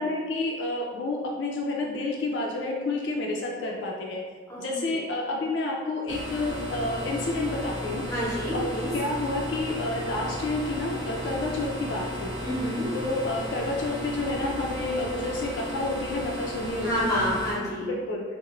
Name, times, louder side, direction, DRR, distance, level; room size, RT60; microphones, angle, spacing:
voice 1, 0.0-4.2 4.6-8.0 8.5-8.7 8.9-12.3 12.9-17.2 17.8-18.2, left 2 dB, 70° left, -1 dB, 0.3 m, -29 dB
voice 2, 4.5-5.0 8.1-8.9 12.4-12.9 16.8-17.9, equal, 15° left, -8 dB, 0.7 m, -29 dB
sound 1, 6.1-17.5, left 1 dB, 25° right, 0.3 m, -35 dB
3.0 x 2.0 x 2.4 m, 1.5 s
head